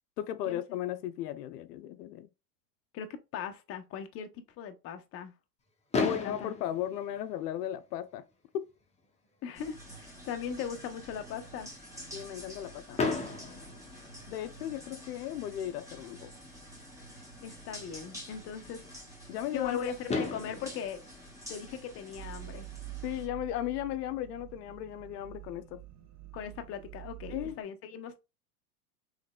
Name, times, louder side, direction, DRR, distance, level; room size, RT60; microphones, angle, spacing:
voice 1, 0.2-2.3 6.0-8.2 8.5-8.7 12.1-13.0 14.3-16.3 19.3-19.9 23.0-25.8 27.3-27.6, left 12 dB, 80° left, 0.6 m, -36 dB
voice 2, 2.9-5.3 6.0-6.5 9.4-11.7 17.4-18.9 19.5-21.0 21.5-22.7 26.3-28.2, left 7 dB, 30° left, 0.6 m, -39 dB
Fireworks, 5.9-7.9 8.8-8.9 9.0-9.3 9.6-9.7 13.0-14.8 16.5-16.6 19.6-19.7 20.1-22.4, left 4 dB, 15° left, 0.9 m, -35 dB
sound 1, 9.5-23.3, equal, 5° right, 1.6 m, -49 dB
sound 2, 22.2-27.6, right 19 dB, 35° right, 0.5 m, -47 dB
3.9 x 3.2 x 2.2 m
hypercardioid pair, 110°, 47 cm